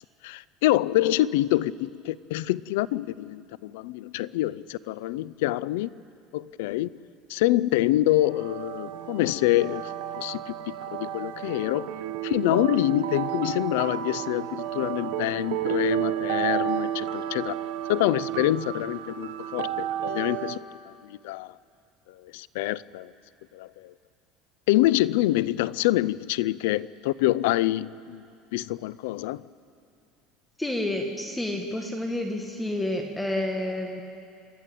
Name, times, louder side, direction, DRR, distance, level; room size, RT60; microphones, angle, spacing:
voice 1, 0.2-5.9 6.3-6.9 7.3-11.9 12.2-17.5 17.9-20.6 21.0-21.6 22.1-23.1 23.5-23.9 24.7-28.3 28.5-29.4, left 16 dB, 85° left, 0.4 m, -26 dB
sound 1, 8.3-20.6, right 11 dB, 85° right, 1.1 m, -31 dB
voice 2, 30.6-34.0, left 1 dB, 5° left, 1.4 m, -29 dB
29.0 x 12.5 x 8.5 m
cardioid pair, 150°, 0 cm